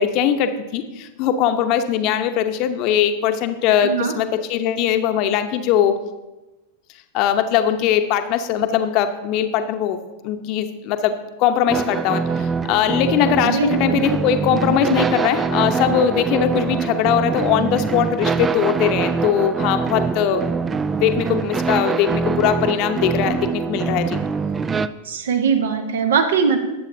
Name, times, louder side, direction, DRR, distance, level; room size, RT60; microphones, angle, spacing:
voice 1, 0.0-5.9 7.1-10.0 10.2-20.5 21.0-24.2, left 9 dB, 40° left, 8 dB, 0.9 m, -20 dB
voice 2, 3.8-4.1 13.4-14.0 25.0-26.6, right 6 dB, 60° right, 7 dB, 1.2 m, -20 dB
sound 1, 11.7-24.9, right 5 dB, 20° right, 0.4 m, -23 dB
19.0 x 8.1 x 2.7 m, 1.1 s
figure-of-eight pair, 90°, 0 cm